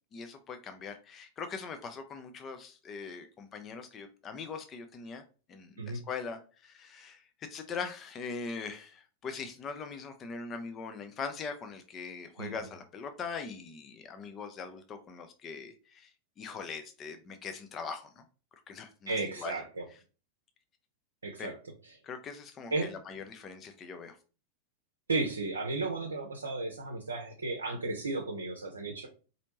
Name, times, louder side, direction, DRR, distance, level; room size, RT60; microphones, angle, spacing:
voice 1, 0.1-5.2 5.5-7.2 7.5-16.1 16.4-18.2 18.7-19.6 21.4-21.5 22.0-24.2, left 5 dB, 25° left, 0.5 m, -41 dB
voice 2, 19.1-19.8 21.2-21.5 22.7-22.9 25.1-29.1, right 3 dB, 75° right, 0.6 m, -34 dB
4.2 x 2.7 x 2.9 m
figure-of-eight pair, 90°, 0 cm